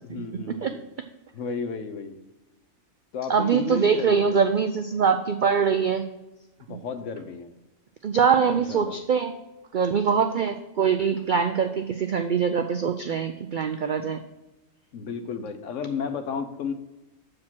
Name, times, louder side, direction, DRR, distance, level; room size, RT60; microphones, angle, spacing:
voice 1, 0.0-0.8 1.3-2.2 3.1-4.4 6.7-7.5 8.4-9.0 14.9-16.7, left 5 dB, 70° left, 9 dB, 1.1 m, -33 dB
voice 2, 3.3-6.0 6.7-6.8 8.0-9.3 9.7-14.2, right 6 dB, 75° right, 7 dB, 0.4 m, -23 dB
7.2 x 4.9 x 6.0 m, 1.0 s
omnidirectional pair, 1.4 m